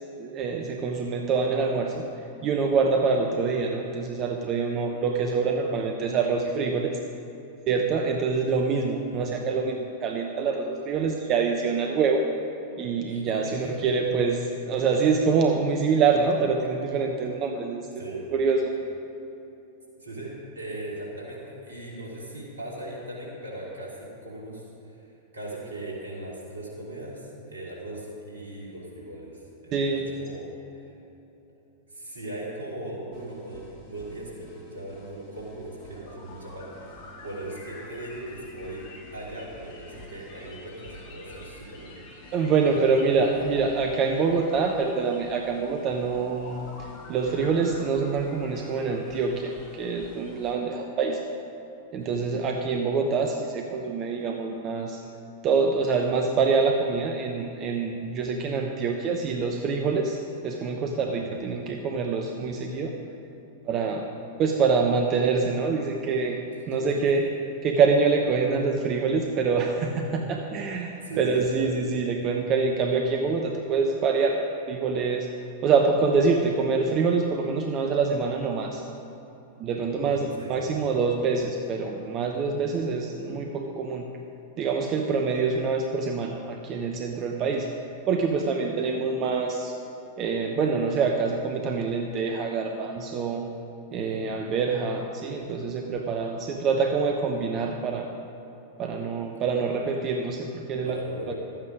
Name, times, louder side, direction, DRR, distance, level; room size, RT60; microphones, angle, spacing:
voice 1, 0.2-2.0 2.4-6.9 7.7-12.2 12.8-18.7 29.7-30.1 42.3-51.2 51.9-55.0 55.4-60.2 60.4-62.9 63.6-64.0 64.4-66.4 66.7-67.2 67.6-74.4 74.7-75.3 75.6-78.8 79.6-84.1 84.6-87.7 88.1-89.8 90.2-93.5 93.9-98.1 98.8-101.0, right 4 dB, 35° right, 3 dB, 0.8 m, -25 dB
voice 2, 9.0-9.4 13.1-13.7 18.0-18.3 20.0-24.6 25.3-30.5 31.9-38.9 39.1-42.3 42.6-42.8 43.3-43.4 51.9-52.2 61.0-61.3 66.7-67.0 71.0-71.8 80.0-80.7 93.9-94.3 100.8-101.3, right 1 dB, 75° right, -4 dB, 3.0 m, -39 dB
sound 1, 33.1-50.5, left 1 dB, 45° left, 2.6 m, -47 dB
12.5 x 8.9 x 5.0 m, 3.0 s
figure-of-eight pair, 95°, 0 cm